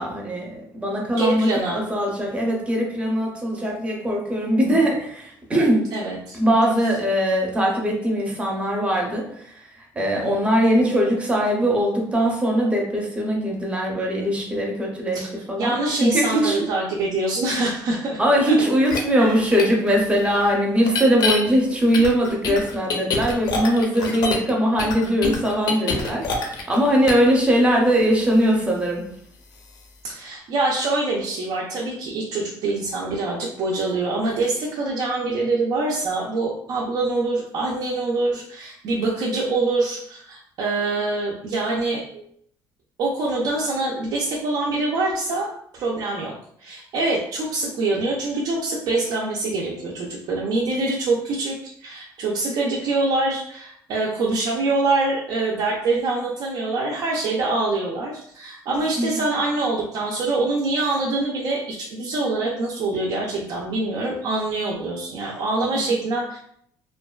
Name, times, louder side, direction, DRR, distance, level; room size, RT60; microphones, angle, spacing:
voice 1, 0.0-5.8 6.3-15.7 16.0-16.7 18.2-29.0 59.0-59.1 65.7-65.9, equal, 15° right, -1 dB, 0.6 m, -21 dB
voice 2, 1.1-1.8 5.9-6.4 10.1-10.5 15.1-15.3 15.6-18.2 18.4-18.5 19.2-19.4 30.0-42.2 43.0-46.3 46.6-66.4, right 2 dB, 60° right, -3 dB, 0.4 m, -25 dB
sound 1, 18.9-19.0 19.6-19.7 20.8-21.4 21.9-24.5 24.8-26.8 27.1-27.3, left 4 dB, 55° left, 0.4 m, -25 dB
2.5 x 2.2 x 2.2 m, 0.68 s
cardioid pair, 135°, 8 cm